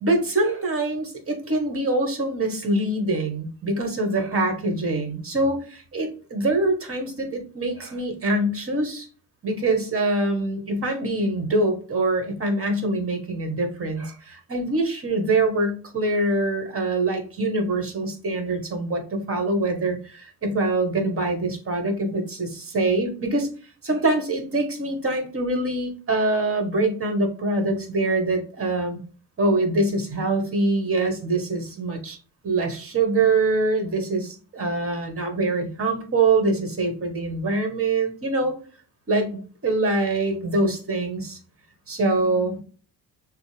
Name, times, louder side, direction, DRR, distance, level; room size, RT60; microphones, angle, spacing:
voice 1, 0.0-9.1 9.4-23.5 23.8-29.0 29.4-32.2 32.4-38.5 39.1-39.3 39.6-41.4 41.9-42.6, right 2 dB, 35° right, 5 dB, 1.3 m, -24 dB
6.2 x 2.1 x 3.3 m, 0.40 s
cardioid pair, 95°, 37 cm